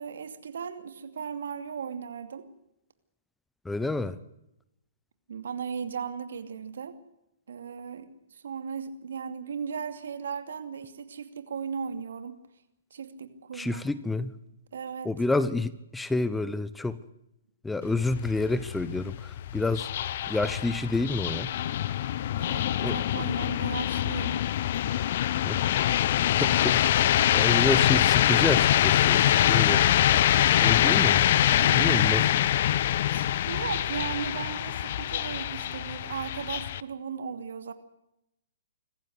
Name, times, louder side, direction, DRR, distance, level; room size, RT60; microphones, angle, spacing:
voice 1, 0.0-2.5 5.3-7.0 7.5-12.4 12.9-13.8 14.7-15.1 22.4-24.4 31.5-32.1 33.1-37.7, right 6 dB, 70° right, 9 dB, 2.6 m, -37 dB
voice 2, 3.6-4.2 13.5-14.3 15.0-17.0 17.6-19.9 20.3-21.5 22.8-23.0 25.4-25.6 26.2-26.8 27.3-29.8 30.6-31.2 31.8-32.3, left 2 dB, 5° left, 15 dB, 0.9 m, -28 dB
sound 1, 17.8-36.8, left 12 dB, 50° left, 0.9 m, -24 dB
26.0 x 14.5 x 8.0 m, 0.86 s
hypercardioid pair, 130°, 0 cm